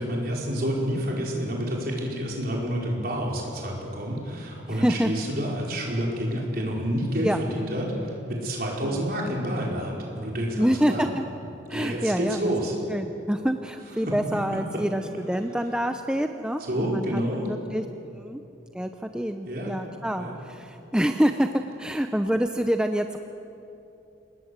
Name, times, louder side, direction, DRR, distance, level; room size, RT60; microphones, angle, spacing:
voice 1, 0.0-11.0 11.7-12.8 14.1-14.2 14.5-14.8 16.7-17.5 19.5-19.8 20.2-20.3, equal, 50° right, -2 dB, 5.2 m, -29 dB
voice 2, 4.7-5.1 7.2-7.4 8.8-9.0 10.6-11.3 11.7-12.5 12.9-18.4 18.7-23.2, equal, 5° right, 6 dB, 0.6 m, -27 dB
28.0 x 19.5 x 8.1 m, 2.8 s
head